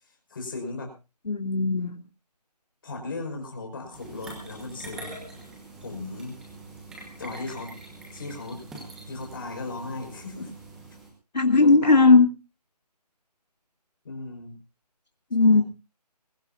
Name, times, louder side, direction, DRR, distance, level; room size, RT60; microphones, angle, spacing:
voice 1, 0.3-0.9 2.8-5.2 5.8-6.4 7.2-7.7 8.1-8.6 9.1-10.5 11.6-12.2 14.0-14.6 15.4-15.6, left 3 dB, 30° left, 3 dB, 5.4 m, -36 dB
voice 2, 1.3-2.0 11.3-12.3 15.3-15.6, left 3 dB, 85° left, 5 dB, 2.3 m, -17 dB
sound 1, 3.9-11.1, right 2 dB, ahead, 1.1 m, -44 dB
22.5 x 15.5 x 2.6 m, 0.29 s
figure-of-eight pair, 170°, 21 cm